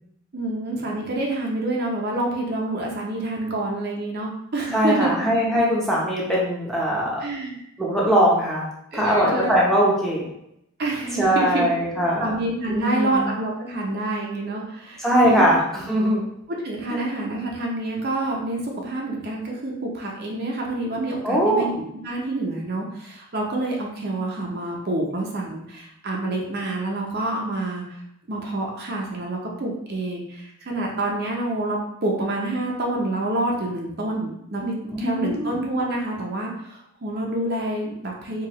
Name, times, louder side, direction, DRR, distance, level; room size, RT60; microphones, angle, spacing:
voice 1, 0.3-5.1 7.2-7.6 8.9-9.6 10.8-11.7 12.2-15.5 16.6-21.7 22.0-27.8 28.3-38.5, right 2 dB, 45° right, -1 dB, 0.6 m, -27 dB
voice 2, 4.7-7.2 7.8-8.7 8.9-10.3 11.2-12.4 12.7-13.3 15.0-16.2 16.9-17.1 21.2-21.7 34.8-35.6, equal, ahead, -6 dB, 0.7 m, -21 dB
4.6 x 2.4 x 3.0 m, 0.76 s
head